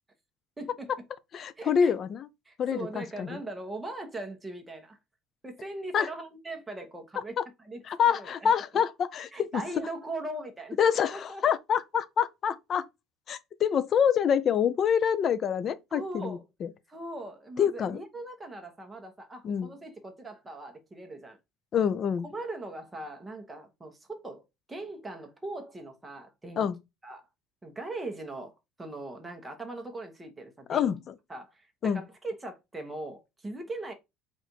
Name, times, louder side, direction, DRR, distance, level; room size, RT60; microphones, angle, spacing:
voice 1, 0.6-0.9 1.6-2.0 2.4-5.0 5.4-7.4 7.6-7.8 8.1-8.8 9.3-10.8 11.1-11.4 15.9-16.4 16.9-21.4 22.2-26.7 27.0-27.3 27.6-30.9 31.3-33.9, right 2 dB, 10° right, 1.1 m, -40 dB
voice 2, 1.3-2.3 2.6-3.4 5.9-6.1 7.4-7.5 7.9-9.6 10.8-12.9 13.3-16.7 17.6-18.0 19.4-19.7 21.7-22.2 26.6-26.7 30.7-31.1 31.8-32.0, left 8 dB, 40° left, 0.5 m, -26 dB
4.1 x 2.6 x 4.5 m
cardioid pair, 125°, 0 cm